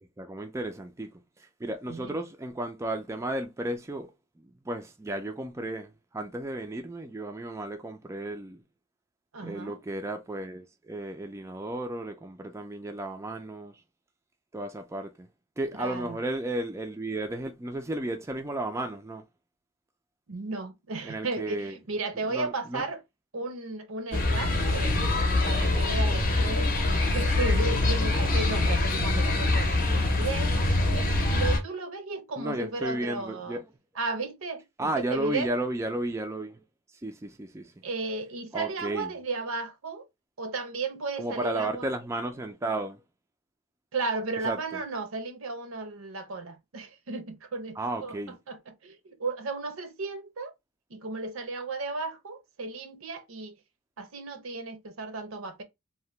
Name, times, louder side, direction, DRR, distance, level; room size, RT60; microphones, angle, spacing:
voice 1, 0.2-1.1 1.4-4.1 4.7-8.6 9.4-13.8 14.5-15.3 15.6-19.2 21.0-21.8 22.3-22.8 32.4-33.7 34.8-36.6 37.0-37.7 38.5-39.1 41.2-43.0 44.4-44.6 47.8-48.4, right 1 dB, 15° right, 0.3 m, -33 dB
voice 2, 9.3-9.8 15.8-16.2 20.3-23.0 23.3-25.0 25.4-30.5 30.9-33.6 34.0-35.5 37.8-40.1 40.4-41.9 43.9-48.2 48.5-50.5 50.9-53.5 54.0-55.6, right 3 dB, 75° right, 0.7 m, -34 dB
sound 1, 24.1-31.6, left 2 dB, 45° left, 0.6 m, -24 dB
2.7 x 2.1 x 3.1 m
head